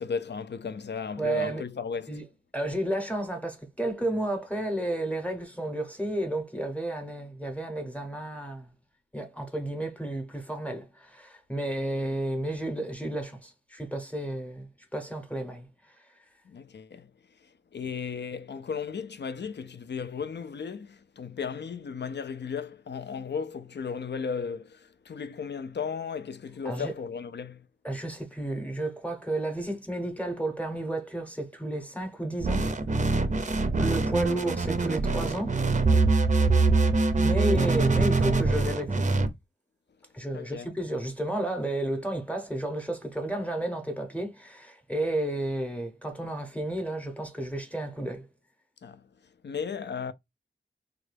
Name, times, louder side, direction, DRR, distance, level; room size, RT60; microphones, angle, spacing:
voice 1, 0.0-2.2 16.5-17.1 17.7-27.7 40.3-40.7 48.8-49.0 49.4-50.1, left 6 dB, 60° left, 0.4 m, -35 dB
voice 2, 1.2-1.6 2.1-2.3 2.5-8.7 9.1-15.7 26.6-26.9 27.8-32.7 33.7-35.6 37.2-39.1 40.1-48.2, right 1 dB, 5° left, 0.8 m, -32 dB
sound 1, 32.4-39.3, right 3 dB, 35° right, 0.5 m, -24 dB
3.7 x 2.3 x 3.3 m
wide cardioid pair, 80°, 20 cm